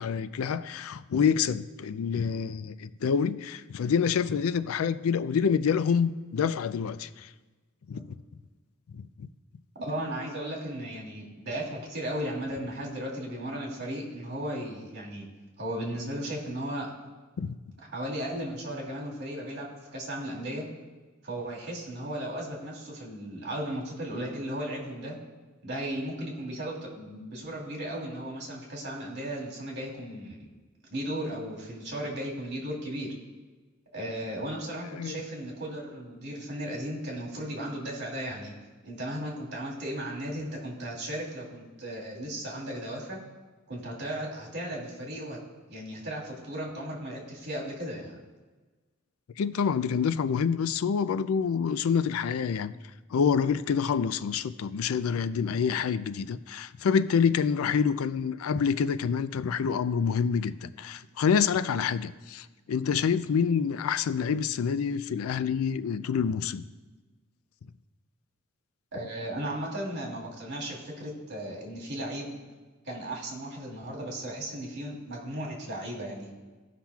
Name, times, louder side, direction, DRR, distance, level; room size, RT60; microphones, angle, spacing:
voice 1, 0.0-7.3 7.9-8.1 8.9-9.3 17.4-17.6 34.9-35.2 49.4-52.7 53.1-66.7, left 6 dB, 85° left, 0.4 m, -27 dB
voice 2, 9.8-15.3 15.6-16.9 17.8-20.7 21.2-25.2 25.6-30.5 30.9-33.1 33.9-38.5 38.8-43.2 43.7-45.4 45.7-48.2 68.9-72.4 72.8-76.3, right 1 dB, 55° right, 2.3 m, -36 dB
17.5 x 5.8 x 2.3 m
head